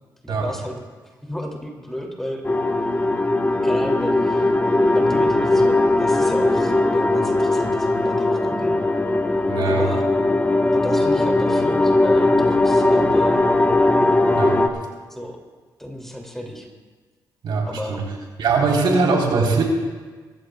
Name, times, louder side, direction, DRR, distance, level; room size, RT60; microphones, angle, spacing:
voice 1, 0.2-2.4 3.6-4.5 4.9-8.8 9.6-10.0 10.7-13.4 15.1-15.4 15.8-16.7 17.6-18.0 18.6-18.8, equal, 5° left, 1 dB, 2.6 m, -33 dB
sound 1, 2.4-14.7, left 2 dB, 20° left, 1.2 m, -19 dB
voice 2, 9.5-9.9 14.3-14.6 17.4-18.0 18.4-19.6, right 4 dB, 75° right, -1 dB, 3.8 m, -21 dB
23.5 x 15.0 x 2.3 m, 1.4 s
cardioid pair, 85°, 8 cm